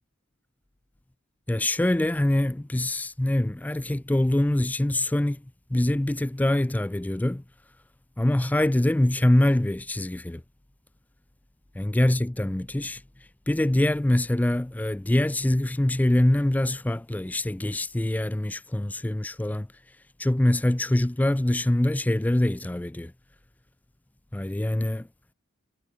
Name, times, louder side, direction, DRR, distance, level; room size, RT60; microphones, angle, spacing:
voice 1, 1.5-5.4 5.7-7.4 8.2-10.4 11.7-13.0 13.5-19.7 20.2-23.1 24.3-25.1, left 1 dB, 10° left, 0.3 m, -24 dB
head